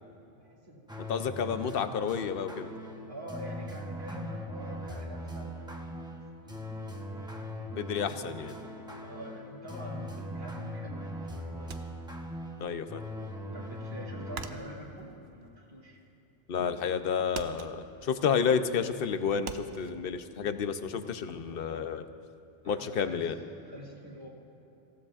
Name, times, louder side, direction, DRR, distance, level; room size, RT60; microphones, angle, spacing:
voice 1, 0.3-1.1 1.5-1.8 3.1-7.2 9.0-11.9 13.5-16.0 22.6-23.3 23.6-24.3, right 1 dB, 45° right, -7 dB, 2.5 m, -46 dB
sound 1, 0.9-14.6, equal, 5° right, 0.8 m, -40 dB
voice 2, 1.1-2.7 7.8-8.6 12.6-13.0 16.5-22.0 22.6-23.4, left 6 dB, 60° left, 9 dB, 0.8 m, -30 dB
sound 2, 11.7-12.8 13.1-16.3 16.6-17.0 17.3-19.9, right 6 dB, 65° right, 0.9 m, -44 dB
26.0 x 15.5 x 2.5 m, 2.8 s
omnidirectional pair, 1.2 m